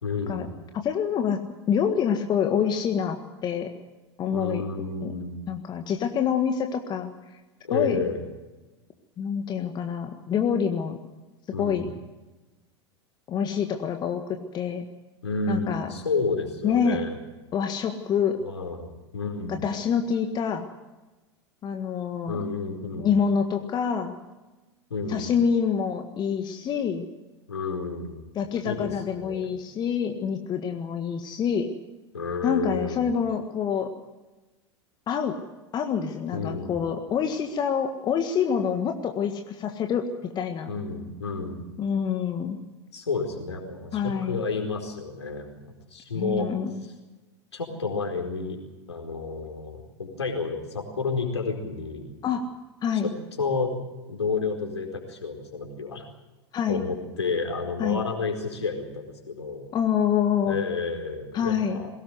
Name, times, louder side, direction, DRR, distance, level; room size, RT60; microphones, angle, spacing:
voice 1, 0.0-0.5 4.3-5.4 7.6-8.2 11.5-11.8 15.2-17.2 18.4-19.6 22.3-23.1 24.9-25.3 27.5-28.3 28.6-29.5 32.1-33.1 36.3-36.7 40.7-41.6 42.9-45.5 45.9-46.5 47.5-48.6 48.9-52.1 53.0-53.1 53.4-53.7 54.1-56.1 56.7-59.7 60.5-61.9, left 4 dB, 75° left, 3 dB, 4.6 m, -30 dB
voice 2, 0.7-1.4 1.7-3.7 4.2-4.6 5.0-5.1 5.5-7.1 7.7-8.0 9.2-11.0 11.6-11.9 13.3-14.8 15.5-15.9 16.6-17.0 17.5-18.4 19.5-20.7 21.6-22.4 23.0-24.1 25.1-27.1 28.3-31.7 32.4-33.9 35.1-35.3 35.7-40.7 41.8-42.6 43.9-44.4 46.1-46.9 52.2-52.4 52.8-53.1 56.5-56.8 57.8-58.0 59.7-60.6 61.3-61.8, left 7 dB, 30° left, 6 dB, 1.6 m, -26 dB
21.5 x 18.5 x 8.0 m, 1.1 s
figure-of-eight pair, 85°, 14 cm